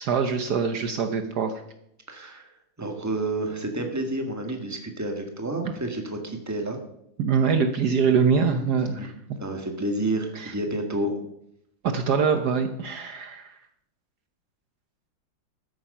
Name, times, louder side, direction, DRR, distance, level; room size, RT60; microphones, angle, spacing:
voice 1, 0.0-1.5 2.2-2.3 7.2-9.4 10.3-10.5 11.8-13.6, right 6 dB, 60° right, 7 dB, 1.4 m, -24 dB
voice 2, 2.1-2.5 2.8-6.8 9.0-9.1 9.4-11.1, right 2 dB, 10° right, 4 dB, 1.7 m, -29 dB
13.5 x 9.2 x 5.6 m, 0.76 s
omnidirectional pair, 2.1 m